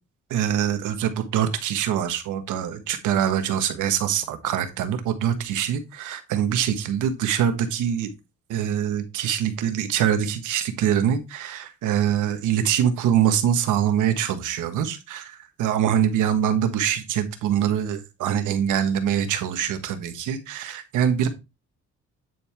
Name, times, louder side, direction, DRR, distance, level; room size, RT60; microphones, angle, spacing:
voice 1, 0.3-8.1 8.5-21.3, right 9 dB, 90° right, 1.3 m, -24 dB
9.4 x 4.4 x 3.4 m
cardioid pair, 90°, 30 cm